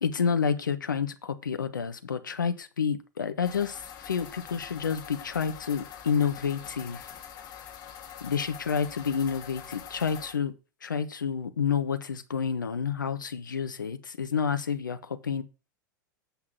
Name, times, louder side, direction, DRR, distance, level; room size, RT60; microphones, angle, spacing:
voice 1, 0.0-7.1 8.2-10.5 10.8-15.4, left 6 dB, 80° left, 1.2 m, -29 dB
sound 1, 3.4-10.3, left 9 dB, 40° left, 2.3 m, -44 dB
8.6 x 6.0 x 5.9 m
figure-of-eight pair, 90°, 10 cm